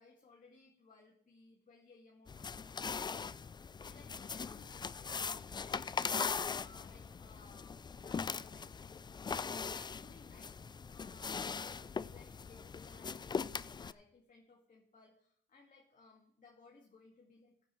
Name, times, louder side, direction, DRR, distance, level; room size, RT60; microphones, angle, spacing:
voice 1, 0.0-8.7 9.6-17.5, left 3 dB, 40° left, 0 dB, 2.0 m, -62 dB
sound 1, 2.3-13.9, left 5 dB, 20° left, 0.3 m, -40 dB
14.5 x 9.9 x 3.2 m, 0.68 s
cardioid pair, 90°, 20 cm